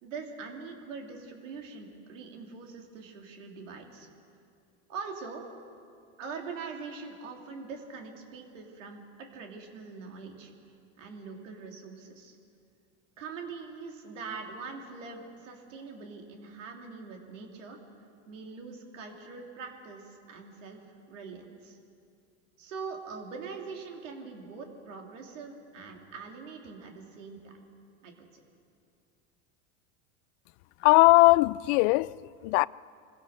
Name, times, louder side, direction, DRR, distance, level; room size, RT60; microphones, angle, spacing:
voice 1, 0.0-4.1 4.9-5.4 6.2-12.4 13.2-17.8 18.3-20.8 21.1-21.8 22.6-27.6 28.0-28.3, right 5 dB, 90° right, 3.3 m, -43 dB
voice 2, 30.8-32.7, left 22 dB, 70° left, 0.5 m, -20 dB
25.0 x 16.5 x 6.7 m
supercardioid pair, 100°, 37 cm